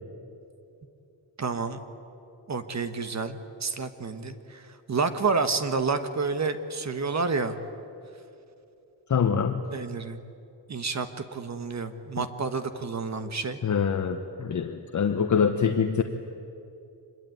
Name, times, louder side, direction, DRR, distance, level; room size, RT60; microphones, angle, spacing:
voice 1, 1.4-1.8 2.5-4.6 4.9-7.6 9.7-10.2 10.7-13.6, right 4 dB, 35° right, 9 dB, 1.4 m, -29 dB
voice 2, 9.1-9.7 13.6-16.0, left 6 dB, 40° left, 6 dB, 1.1 m, -25 dB
25.5 x 21.5 x 9.4 m, 2.7 s
wide cardioid pair, 145°, 45 cm